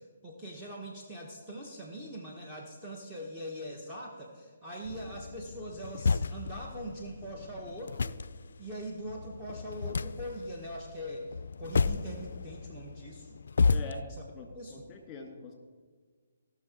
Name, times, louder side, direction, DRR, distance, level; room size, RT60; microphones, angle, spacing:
voice 1, 0.0-8.1 8.6-13.3 14.1-14.2 14.5-14.9, equal, 10° right, -3 dB, 1.2 m, -42 dB
sound 1, 4.8-14.0, left 4 dB, 65° left, 0.3 m, -33 dB
voice 2, 13.7-14.1 14.3-15.5, left 3 dB, 20° left, 3 dB, 2.0 m, -44 dB
17.0 x 6.1 x 4.4 m, 1.5 s
figure-of-eight pair, 135°, 0 cm